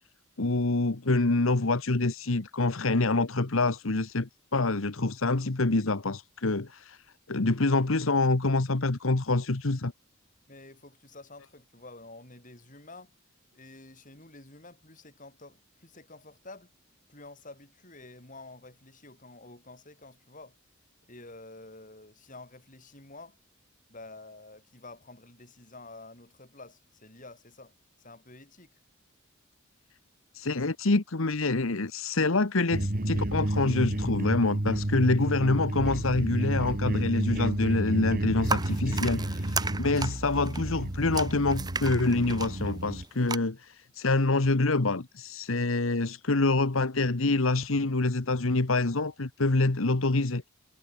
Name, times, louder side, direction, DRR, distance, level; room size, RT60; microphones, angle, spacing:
voice 1, 0.4-7.0 7.3-9.9 30.3-50.4, left 2 dB, 70° left, 1.3 m, -26 dB
voice 2, 10.5-13.1 13.5-16.7 17.1-20.6 21.1-23.4 23.9-28.8, left 2 dB, 40° left, 7.6 m, -49 dB
sound 1, 32.7-43.0, right 1 dB, 40° right, 1.8 m, -30 dB
sound 2, 38.4-43.4, right 4 dB, 20° right, 1.3 m, -35 dB
head